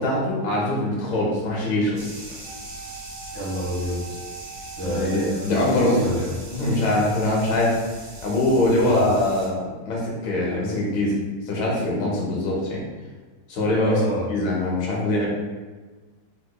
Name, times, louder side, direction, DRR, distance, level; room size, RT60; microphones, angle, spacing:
voice 1, 0.0-2.1 4.8-6.0 6.5-7.8 8.2-11.2 11.5-12.8 13.5-14.0 14.3-15.3, left 1 dB, 85° left, -4 dB, 1.7 m, -23 dB
sound 1, 2.0-9.5, right 1 dB, 90° right, 1.6 m, -41 dB
sound 2, 2.4-6.5 6.8-6.9, right 4 dB, 75° right, 1.2 m, -42 dB
voice 2, 3.3-4.1 4.8-6.3 8.8-9.0 13.8-14.3, equal, 25° right, -10 dB, 0.8 m, -28 dB
4.3 x 2.8 x 2.3 m, 1.3 s
omnidirectional pair, 2.1 m